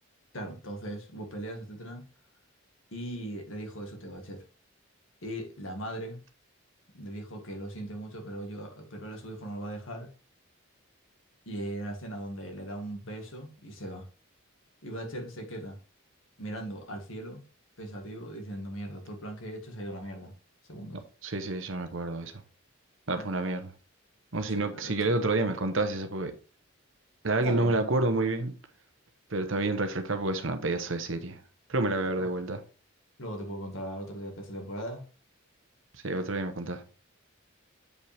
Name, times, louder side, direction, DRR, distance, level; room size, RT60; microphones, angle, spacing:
voice 1, 0.3-2.0 2.9-4.4 5.2-6.2 6.9-10.1 11.5-14.1 14.8-15.8 16.4-17.4 17.8-20.3 20.7-21.0 23.2-23.3 24.5-25.1 27.4-27.7 32.2-32.3 33.2-35.0, right 1 dB, 65° left, 1.9 m, -39 dB
voice 2, 21.2-22.3 23.1-23.7 24.3-26.3 27.2-28.5 29.3-31.4 31.7-32.6 36.0-36.8, right 2 dB, 65° right, 1.1 m, -29 dB
8.0 x 5.2 x 3.5 m
head